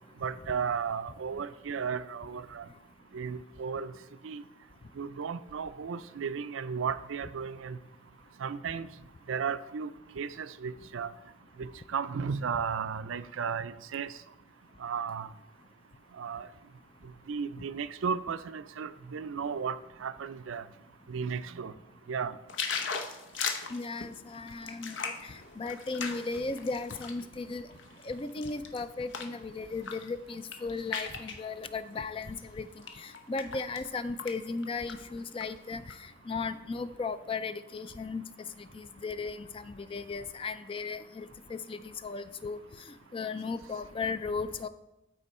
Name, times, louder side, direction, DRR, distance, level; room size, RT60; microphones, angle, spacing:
voice 1, 0.2-2.7 3.1-3.9 4.2-4.4 5.0-7.8 8.4-8.9 9.3-9.9 10.2-11.1 11.6-14.1 14.8-15.3 16.2-16.5 17.3-20.6 21.1-21.7 22.1-22.4, right 6 dB, 85° right, 14 dB, 0.4 m, -34 dB
sound 1, 22.5-27.2 27.7-29.4 29.7-30.1 30.3-31.4 32.2-32.4 32.8-33.9 34.2-34.3 34.6-35.4 35.9-36.0, left 5 dB, 70° left, 0.8 m, -37 dB
voice 2, 23.7-25.0 25.2-27.7 28.0-32.7 33.0-36.0 36.3-38.2 38.6-42.6 43.1-44.7, left 4 dB, 25° left, 12 dB, 0.3 m, -36 dB
13.0 x 4.4 x 4.2 m, 0.96 s
head